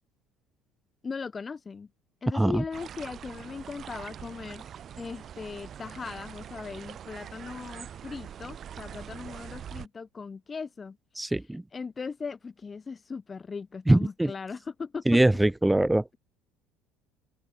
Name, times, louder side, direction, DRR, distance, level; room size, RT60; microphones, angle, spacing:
voice 1, 1.0-1.9 2.2-4.7 5.0-11.0 11.2-15.2, left 5 dB, 30° left, 1.5 m, -38 dB
sound 1, 2.7-9.9, right 9 dB, 45° right, 6.0 m, -43 dB
voice 2, 11.2-11.6 13.9-14.3 15.1-16.0, right 1 dB, 10° right, 0.3 m, -22 dB
hypercardioid pair, 80°, 0 cm